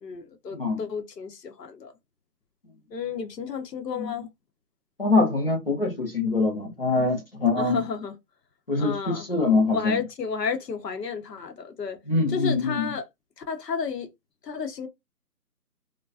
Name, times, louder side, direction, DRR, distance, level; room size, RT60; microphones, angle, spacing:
voice 1, 0.0-1.9 2.9-4.3 7.6-8.1 8.8-9.3 9.7-12.0 12.3-13.0 13.4-14.1 14.4-14.9, left 5 dB, 85° left, 0.9 m, -32 dB
voice 2, 5.0-7.8 8.7-10.0 12.1-12.9, left 3 dB, 35° left, 0.7 m, -24 dB
2.4 x 2.2 x 2.3 m
figure-of-eight pair, 170°, 48 cm